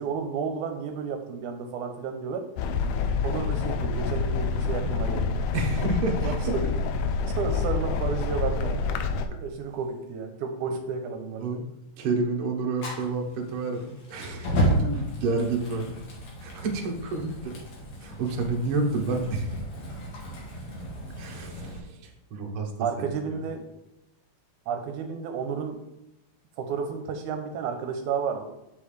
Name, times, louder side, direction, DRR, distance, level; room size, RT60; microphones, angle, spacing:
voice 1, 0.0-2.5 3.2-5.3 6.2-6.6 7.4-8.8 9.4-11.5 22.8-23.6 24.7-25.8 26.6-28.4, right 6 dB, 80° right, 5 dB, 2.1 m, -32 dB
sound 1, 2.6-9.3, left 4 dB, 80° left, 2.0 m, -27 dB
voice 2, 5.5-6.5 11.4-11.7 12.0-16.0 16.4-17.6 18.0-19.6 21.2-22.7 23.0-23.4, right 3 dB, 55° right, 1 dB, 1.7 m, -29 dB
Fire, 12.8-21.8, equal, 65° left, 3.0 m, -32 dB
7.6 x 6.3 x 3.3 m, 0.91 s
omnidirectional pair, 3.6 m